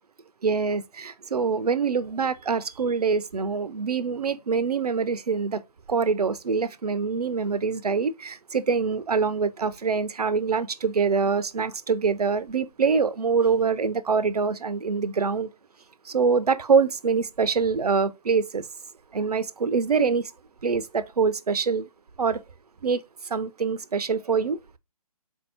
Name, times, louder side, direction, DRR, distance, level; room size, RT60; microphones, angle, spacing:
voice 1, 0.4-5.6 5.9-15.5 16.1-18.7 19.1-20.3 20.6-21.8 22.2-22.4 22.8-23.0 23.3-24.6, right 5 dB, 80° right, 0.5 m, -24 dB
4.1 x 2.7 x 3.9 m
figure-of-eight pair, 140°, 19 cm